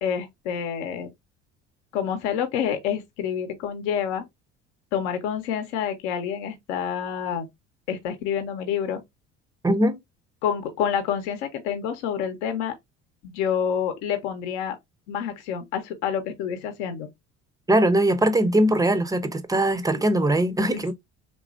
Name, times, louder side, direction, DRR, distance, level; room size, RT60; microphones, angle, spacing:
voice 1, 0.0-1.1 1.9-4.3 4.9-7.5 7.9-9.0 10.4-12.8 13.2-14.8 15.1-17.1 20.7-20.9, left 8 dB, 70° left, 0.7 m, -28 dB
voice 2, 9.6-10.0 17.7-20.9, right 1 dB, 10° right, 0.5 m, -21 dB
3.1 x 2.5 x 2.4 m
hypercardioid pair, 65°, 36 cm